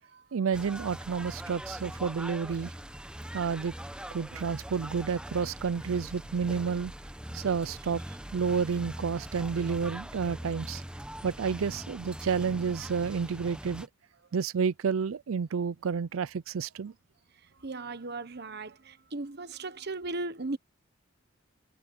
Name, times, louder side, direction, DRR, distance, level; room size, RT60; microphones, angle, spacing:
voice 1, 0.3-2.7 3.3-3.7 4.1-6.9 7.3-8.0 8.3-10.8 11.2-13.9 14.3-16.9, right 6 dB, 90° right, 0.5 m, -30 dB
sound 1, 0.5-13.9, equal, 5° right, 1.2 m, -42 dB
voice 2, 17.5-20.6, right 2 dB, 55° right, 1.3 m, -37 dB
head